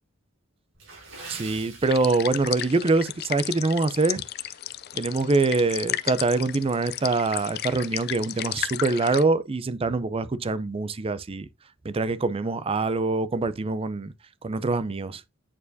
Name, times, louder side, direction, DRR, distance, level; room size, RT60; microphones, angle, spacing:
Water / Splash splatter, 0.7-2.7 3.0-3.2 3.8-4.0 4.4-4.5, right 3 dB, 85° right, 3.9 m, -43 dB
voice 1, 1.3-4.2 4.9-11.5 11.8-14.1 14.4-15.2, right 3 dB, 30° right, 0.5 m, -24 dB
sound 1, 1.8-9.2, left 13 dB, 55° left, 0.4 m, -34 dB
8.6 x 4.6 x 2.6 m
head